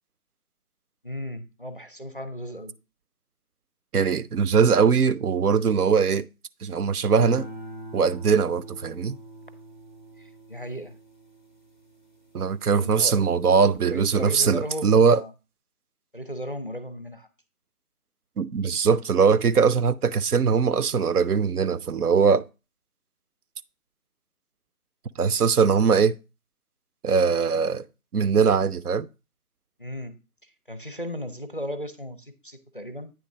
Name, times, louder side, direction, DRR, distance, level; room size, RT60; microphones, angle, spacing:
voice 1, 1.0-2.8 10.2-11.0 12.8-13.2 13.9-15.3 16.1-17.3 29.8-33.1, equal, 35° left, 0.5 m, -36 dB
voice 2, 3.9-6.2 6.6-7.5 7.9-9.2 12.3-15.2 18.4-22.4 25.2-26.2 27.0-27.8 28.1-29.1, right 6 dB, 75° right, 0.6 m, -21 dB
sound 1, 7.2-13.7 14.2-14.7, right 1 dB, 35° right, 0.5 m, -43 dB
8.9 x 3.4 x 5.0 m
figure-of-eight pair, 160°, 45 cm